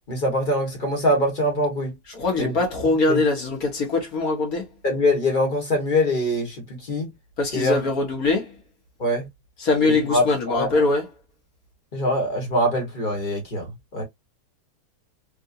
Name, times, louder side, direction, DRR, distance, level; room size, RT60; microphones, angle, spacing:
voice 1, 0.1-2.0 2.4-2.5 2.8-3.2 4.8-7.1 7.5-7.9 9.0-9.3 9.8-10.7 11.9-14.0, left 1 dB, 30° left, 1.6 m, -24 dB
voice 2, 2.1-4.7 7.4-8.5 9.6-11.1, left 3 dB, 60° left, 1.8 m, -22 dB
3.6 x 2.6 x 2.6 m
omnidirectional pair, 1.8 m